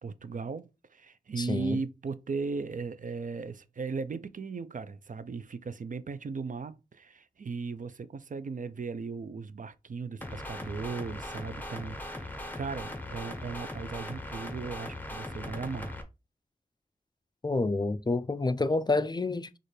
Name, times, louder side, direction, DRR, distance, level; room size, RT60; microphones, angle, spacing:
voice 1, 0.0-16.0, right 4 dB, 60° right, 0.4 m, -37 dB
voice 2, 1.4-1.8 17.4-19.6, left 3 dB, 30° left, 0.4 m, -28 dB
sound 1, 10.2-16.0, left 1 dB, 10° left, 1.0 m, -39 dB
6.4 x 2.5 x 3.2 m
wide cardioid pair, 75°, 15 cm